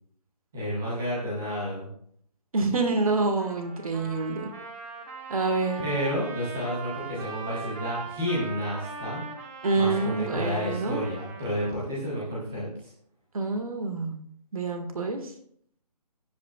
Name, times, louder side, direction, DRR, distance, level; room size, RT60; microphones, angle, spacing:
voice 1, 0.5-1.9 5.8-9.2 9.8-12.7, equal, ahead, -7 dB, 0.4 m, -30 dB
voice 2, 2.5-4.5 5.3-5.8 9.6-11.0 13.3-14.2 14.5-15.3, right 3 dB, 55° right, 5 dB, 1.8 m, -27 dB
Trumpet, 3.4-11.8, right 5 dB, 20° right, 1.2 m, -41 dB
16.5 x 8.6 x 2.4 m, 0.64 s
figure-of-eight pair, 155°, 21 cm